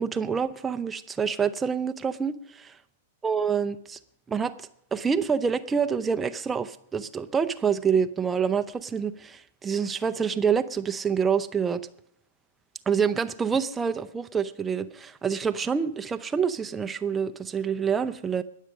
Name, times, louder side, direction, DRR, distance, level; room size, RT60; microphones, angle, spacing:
voice 1, 0.0-2.8 3.2-4.0 4.3-4.5 4.9-11.8 12.9-18.4, right 6 dB, 15° right, 9 dB, 0.6 m, -27 dB
20.0 x 7.4 x 5.2 m, 0.70 s
figure-of-eight pair, 100°, 0 cm